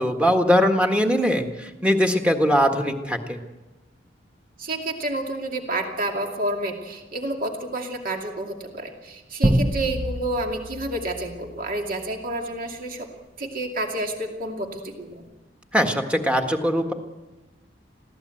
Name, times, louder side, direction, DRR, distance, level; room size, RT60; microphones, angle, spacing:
voice 1, 0.0-3.4 15.7-16.9, equal, 5° right, 4 dB, 1.7 m, -21 dB
voice 2, 4.6-13.1 13.4-15.2, right 1 dB, 50° right, 2 dB, 2.5 m, -29 dB
sound 1, 9.4-12.2, right 1 dB, 35° right, 1.2 m, -26 dB
22.0 x 16.0 x 7.9 m, 1.1 s
head